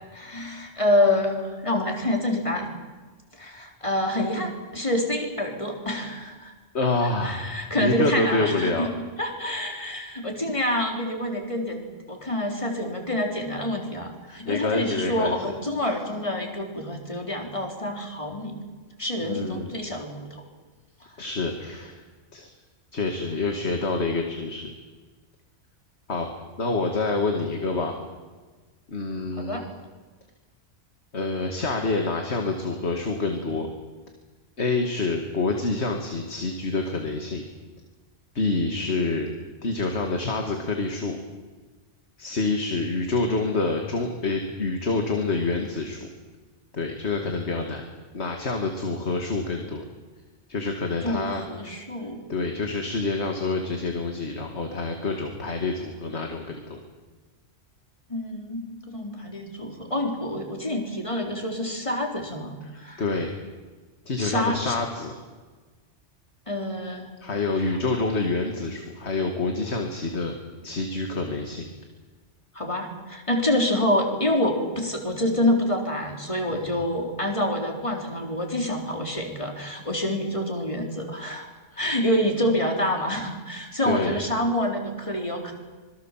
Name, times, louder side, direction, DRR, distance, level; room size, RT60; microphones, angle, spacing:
voice 1, 0.1-2.7 3.4-6.5 7.2-8.9 9.2-18.6 19.0-20.3 29.4-29.6 51.0-52.2 58.1-62.5 62.8-63.0 64.2-64.7 66.5-67.1 67.6-67.7 72.5-81.5 81.8-85.5, left 1 dB, 25° left, 2 dB, 3.8 m, -27 dB
voice 2, 6.7-8.9 14.4-15.4 19.2-19.7 21.2-22.0 22.3-22.5 22.9-24.7 26.1-26.3 26.6-27.9 28.9-29.7 31.1-33.7 34.6-37.4 38.3-39.3 39.6-41.2 42.2-46.1 46.7-47.8 48.1-49.9 50.5-51.4 52.3-56.8 63.0-63.3 64.1-65.1 67.2-70.3 70.6-71.7 76.5-76.6 81.7-81.8 83.9-84.2, left 3 dB, 60° left, 3 dB, 2.4 m, -27 dB
25.5 x 22.0 x 7.5 m, 1.3 s
omnidirectional pair, 1.3 m